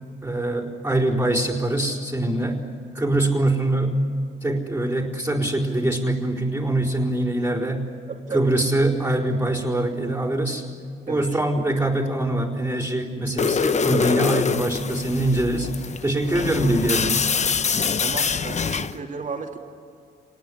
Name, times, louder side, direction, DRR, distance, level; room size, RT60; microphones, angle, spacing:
voice 1, 0.2-2.7 2.9-4.0 4.4-7.9 8.3-10.6 11.1-15.7 16.0-17.2, right 1 dB, 10° right, -5 dB, 4.3 m, -23 dB
voice 2, 8.1-8.5 11.1-11.4 16.4-16.5 17.9-19.6, right 5 dB, 40° right, 2 dB, 2.8 m, -34 dB
sound 1, 13.4-19.0, left 6 dB, 35° left, 0.9 m, -24 dB
26.5 x 19.5 x 10.0 m, 2.3 s
cardioid pair, 90°, 20 cm